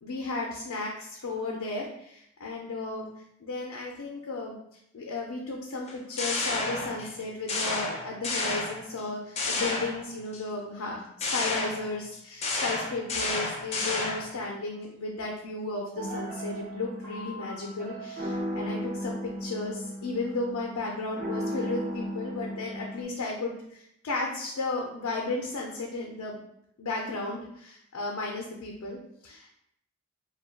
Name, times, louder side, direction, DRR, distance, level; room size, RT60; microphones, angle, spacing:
voice 1, 0.0-3.1 3.4-4.5 4.9-26.4 26.8-29.5, left 3 dB, 85° left, -2 dB, 0.5 m, -34 dB
sound 1, 5.9-7.2 7.5-9.0 9.4-10.4 11.2-14.4, left 3 dB, 30° left, 0.4 m, -31 dB
sound 2, 16.0-23.0, equal, 40° right, 0.6 m, -36 dB
2.2 x 2.2 x 3.3 m, 0.74 s
head